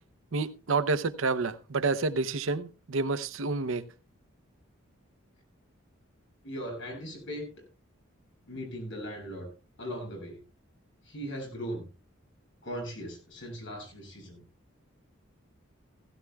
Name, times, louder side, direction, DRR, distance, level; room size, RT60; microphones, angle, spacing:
voice 1, 0.3-3.8, right 3 dB, 70° right, 0.7 m, -29 dB
voice 2, 6.4-7.5 8.5-9.5 9.8-10.4 11.1-11.8 12.6-14.4, equal, 60° left, 7.4 m, -38 dB
17.0 x 16.0 x 2.3 m
head